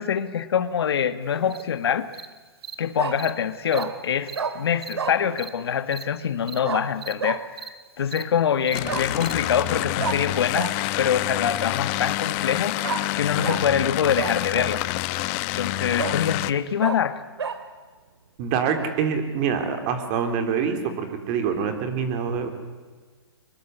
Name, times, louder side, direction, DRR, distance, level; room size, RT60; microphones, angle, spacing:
voice 1, 0.0-2.1 2.8-10.7 11.0-14.8 15.6-17.2, left 8 dB, 70° left, 13 dB, 1.5 m, -25 dB
Bark, 1.3-1.7 3.0-3.2 3.7-3.9 4.3-4.5 5.0-5.2 6.6-6.8 7.2-7.4 8.8-9.1 10.0-10.2 10.5-10.7 12.8-13.0 13.4-13.6 14.2-14.8 15.3-15.4 16.0-16.2 16.8-17.0 17.4-17.6, right 6 dB, 85° right, 2.4 m, -29 dB
Cricket, 1.5-1.6 2.1-2.3 2.6-2.8 3.2-3.3 3.7-3.8 4.3-4.4 4.8-4.9 5.4-5.5 5.9-6.0 6.5-6.6 7.0-7.1 7.6-7.7 8.1-8.2 8.7-8.8 9.2-9.3, right 7 dB, 65° right, 2.2 m, -38 dB
sound 1, 8.7-16.5, left 18 dB, 35° left, 0.9 m, -27 dB
voice 2, 18.4-22.5, right 6 dB, 35° right, 7 dB, 3.8 m, -25 dB
24.0 x 21.5 x 8.2 m, 1.4 s
hypercardioid pair, 135°, 14 cm